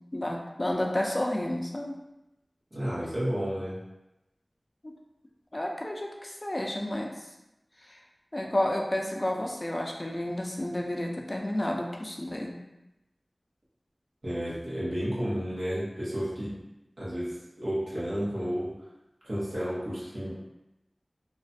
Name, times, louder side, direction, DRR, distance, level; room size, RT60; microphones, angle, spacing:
voice 1, 0.1-2.0 4.8-4.9 5.5-7.1 7.9-8.0 8.3-12.6, left 1 dB, 40° left, 1 dB, 0.3 m, -31 dB
voice 2, 2.7-3.8 14.2-16.6 17.0-18.7 19.2-20.3, equal, 85° right, -8 dB, 0.8 m, -32 dB
2.4 x 2.1 x 2.5 m, 0.94 s
wide cardioid pair, 50°, 0 cm